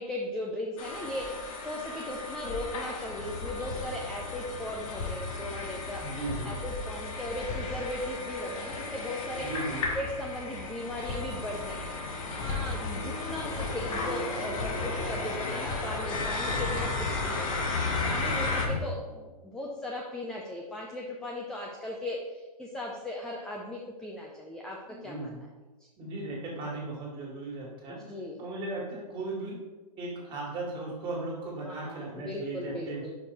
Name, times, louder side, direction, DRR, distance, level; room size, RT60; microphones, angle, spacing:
voice 1, 0.0-6.0 6.4-9.5 9.9-25.5 27.9-28.4 31.6-33.1, left 1 dB, 5° left, -2 dB, 0.4 m, -37 dB
sound 1, 0.8-18.7, left 3 dB, 55° left, 1.3 m, -36 dB
Hammer, 3.1-18.8, left 3 dB, 30° left, 1.5 m, -37 dB
voice 2, 6.0-6.5 9.4-9.8 24.9-25.4 26.0-28.0 28.4-29.6 30.0-33.0, right 2 dB, 25° right, -3 dB, 1.9 m, -37 dB
5.3 x 4.5 x 4.3 m, 1.2 s
hypercardioid pair, 135°, 20 cm